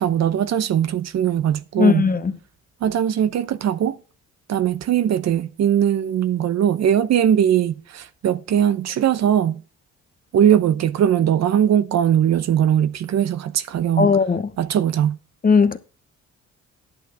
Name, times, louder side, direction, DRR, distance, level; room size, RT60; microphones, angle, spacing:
voice 1, 0.0-2.0 2.8-4.0 4.5-9.6 10.3-14.1 14.6-15.2, right 9 dB, 60° right, 0.8 m, -20 dB
voice 2, 1.8-2.3 14.0-14.5 15.4-15.8, left 5 dB, 30° left, 0.9 m, -17 dB
11.0 x 6.4 x 4.7 m
cardioid pair, 90°, 30 cm